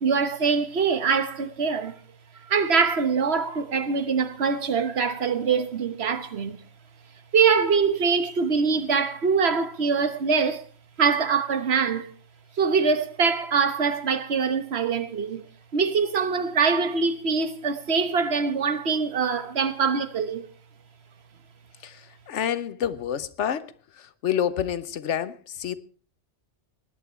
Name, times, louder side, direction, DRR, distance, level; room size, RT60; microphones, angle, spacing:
voice 1, 0.0-2.0 2.5-6.6 7.3-10.6 11.0-12.1 12.6-15.5 15.7-20.4, right 5 dB, 60° right, 1.4 m, -23 dB
voice 2, 21.8-25.8, left 9 dB, 80° left, 1.1 m, -29 dB
19.0 x 10.5 x 4.4 m
omnidirectional pair, 1.2 m